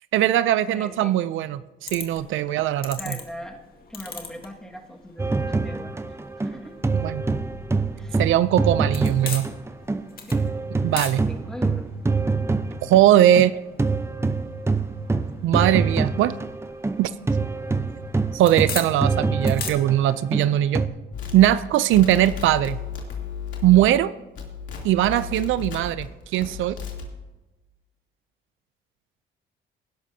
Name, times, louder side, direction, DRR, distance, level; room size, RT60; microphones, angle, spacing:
voice 1, 0.1-3.1 7.0-7.2 8.2-9.5 10.8-11.2 12.8-13.5 15.4-16.4 17.0-17.1 18.3-20.8 21.3-22.8 23.6-24.1 24.8-26.1 26.3-26.8, right 12 dB, 80° right, 15 dB, 0.5 m, -20 dB
voice 2, 0.7-1.2 3.0-3.6 3.9-6.7 8.0-8.2 10.2-10.5 11.1-11.9, equal, 5° left, 1 dB, 1.9 m, -40 dB
sound 1, 1.9-19.7, left 5 dB, 50° left, 2.1 m, -41 dB
sound 2, 5.2-10.0 10.3-20.9, right 3 dB, 15° right, 0.7 m, -25 dB
sound 3, 21.1-24.0 24.3-26.0 26.4-27.1, left 7 dB, 70° left, 3.0 m, -34 dB
19.5 x 11.5 x 2.8 m, 1.1 s
cardioid pair, 90°, 20 cm